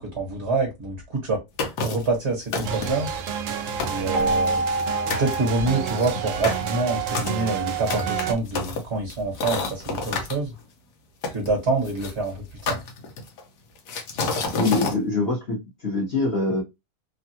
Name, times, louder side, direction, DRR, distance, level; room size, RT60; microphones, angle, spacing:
voice 1, 0.0-1.4 1.8-3.1 3.9-4.6 5.2-10.5 11.3-12.8, right 3 dB, 45° right, 1.3 m, -26 dB
sound 1, 1.6-2.1 2.5-3.1 3.5-3.6 3.8-4.8 5.1-5.4 5.9-10.4 11.2-12.1 12.7-13.4 13.9-15.0, left 4 dB, 75° left, 1.3 m, -29 dB
sound 2, 2.6-8.3, right 8 dB, 70° right, 0.8 m, -30 dB
Keyboard (musical), 4.1-6.7, right 1 dB, 25° left, 0.8 m, -28 dB
voice 2, 14.5-16.6, left 2 dB, 40° left, 1.2 m, -24 dB
3.4 x 2.2 x 2.7 m
omnidirectional pair, 1.8 m